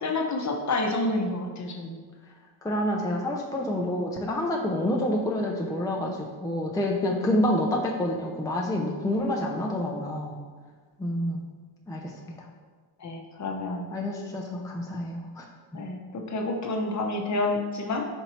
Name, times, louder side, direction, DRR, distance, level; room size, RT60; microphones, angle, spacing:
voice 1, 0.0-2.0 13.0-13.9 15.7-18.0, left 2 dB, 40° left, 2 dB, 0.8 m, -29 dB
voice 2, 2.6-10.4 11.0-11.4 11.9-12.1 13.9-15.4 15.7-15.8, left 1 dB, 10° left, 0 dB, 0.5 m, -28 dB
4.5 x 2.7 x 4.3 m, 1.5 s
supercardioid pair, 65°, 46 cm